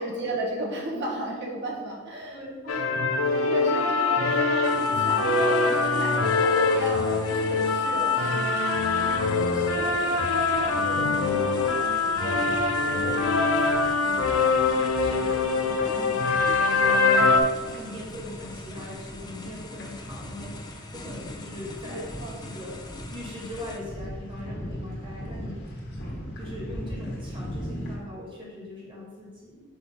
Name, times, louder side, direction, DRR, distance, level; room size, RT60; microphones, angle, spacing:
voice 1, 0.0-8.5 17.6-17.8 21.8-22.4, right 1 dB, 55° right, -2 dB, 1.3 m, -34 dB
sound 1, 2.7-17.4, left 3 dB, 80° left, 0.6 m, -23 dB
voice 2, 3.9-4.2 9.5-14.2 14.7-20.5 20.9-22.1 22.4-22.8 23.1-25.6 26.4-29.6, left 1 dB, 25° right, -5 dB, 1.9 m, -41 dB
sound 2, 4.6-23.8, left 2 dB, 20° left, 0.5 m, -44 dB
sound 3, 9.0-28.0, equal, 50° left, 1.5 m, -40 dB
5.7 x 3.2 x 5.5 m, 1.4 s
head